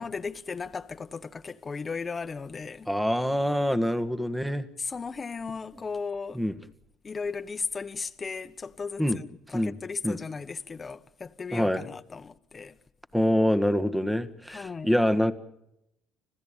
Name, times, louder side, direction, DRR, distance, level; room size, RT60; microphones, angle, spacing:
voice 1, 0.0-2.9 4.8-6.4 7.0-9.3 9.5-12.7 14.5-14.9, left 5 dB, 30° left, 1.3 m, -36 dB
voice 2, 2.9-4.7 6.3-6.5 9.0-9.2 9.5-9.7 10.0-10.2 11.5-11.9 13.1-15.3, equal, 5° right, 1.7 m, -25 dB
25.5 x 16.0 x 9.0 m
supercardioid pair, 75°, 0 cm